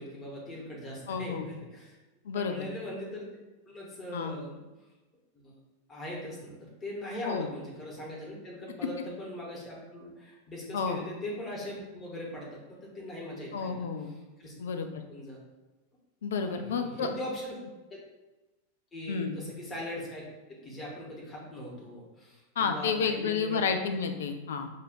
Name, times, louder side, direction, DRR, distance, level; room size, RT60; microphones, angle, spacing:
voice 1, 0.0-1.9 2.3-3.3 3.7-4.6 5.3-5.5 5.9-14.5 15.1-15.4 16.4-17.5 18.9-20.2 20.5-23.7, equal, 20° left, -5 dB, 1.3 m, -40 dB
voice 2, 1.1-1.5 2.2-2.7 4.1-4.3 7.2-7.5 10.7-11.0 13.5-14.1 14.6-14.9 16.2-17.1 19.1-19.3 22.6-24.7, left 5 dB, 60° left, 7 dB, 0.4 m, -30 dB
6.4 x 2.6 x 2.6 m, 1.1 s
figure-of-eight pair, 90°, 0 cm